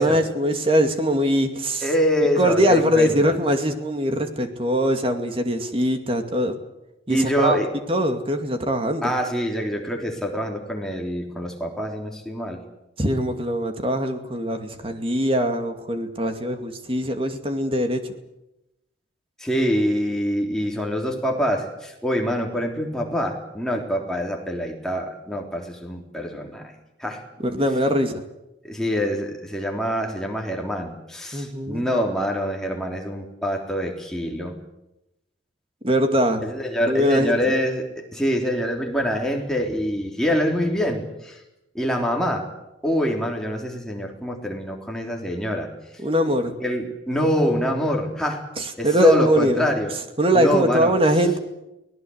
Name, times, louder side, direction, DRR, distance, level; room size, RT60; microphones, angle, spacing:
voice 1, 0.0-1.9 2.4-6.6 7.1-7.6 7.9-9.1 13.0-18.2 27.4-28.2 31.3-31.8 35.8-36.4 36.8-37.5 46.0-46.5 48.6-51.4, equal, 30° right, 6 dB, 2.4 m, -22 dB
voice 2, 1.8-3.3 7.1-7.7 9.0-12.6 19.4-26.7 27.0-27.2 28.6-34.6 36.4-41.4 41.7-42.5 42.8-45.7 46.6-48.4 48.8-49.9 50.3-50.9, equal, 5° left, 0 dB, 3.7 m, -25 dB
24.5 x 18.5 x 8.1 m, 0.90 s
head